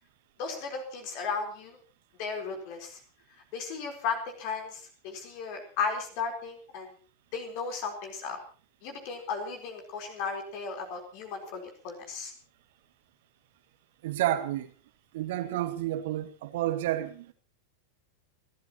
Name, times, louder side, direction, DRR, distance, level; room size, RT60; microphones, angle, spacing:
voice 1, 0.4-1.8 2.2-3.0 3.5-6.9 7.3-8.4 8.8-12.3, left 5 dB, 45° left, 4.2 m, -35 dB
voice 2, 14.0-14.7 15.1-17.3, right 13 dB, 55° right, 2.0 m, -30 dB
30.0 x 13.0 x 3.0 m
figure-of-eight pair, 90°, 0 cm